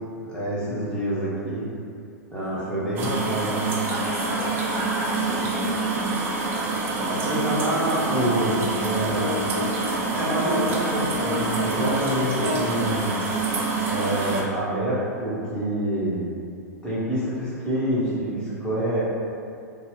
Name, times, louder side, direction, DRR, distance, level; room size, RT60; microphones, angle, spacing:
voice 1, 0.2-1.6 2.3-3.7 7.0-9.3 10.1-13.1 13.8-16.2 16.8-19.0, right 1 dB, 10° left, -10 dB, 0.9 m, -27 dB
voice 2, 2.3-2.8 3.9-6.0, equal, 45° left, -11 dB, 1.5 m, -34 dB
sound 1, 3.0-14.4, right 3 dB, 25° right, 0.4 m, -26 dB
sound 2, 7.8-9.9 10.3-12.7, left 1 dB, 85° left, 0.5 m, -29 dB
2.8 x 2.2 x 3.3 m, 2.4 s
figure-of-eight pair, 100°, 9 cm